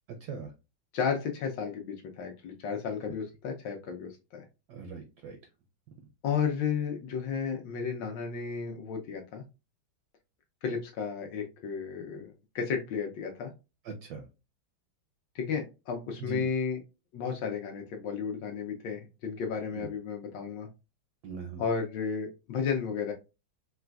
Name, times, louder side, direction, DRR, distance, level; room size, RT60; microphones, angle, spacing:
voice 1, 0.1-0.5 4.7-5.4 13.8-14.3 16.2-16.5 19.7-19.9 21.2-21.7, right 5 dB, 75° right, 3 dB, 0.9 m, -41 dB
voice 2, 0.9-4.4 6.2-9.4 10.6-13.5 15.3-16.8 17.1-20.7 21.6-23.1, left 6 dB, 70° left, 3 dB, 1.1 m, -33 dB
3.9 x 2.4 x 2.3 m, 0.28 s
omnidirectional pair, 2.2 m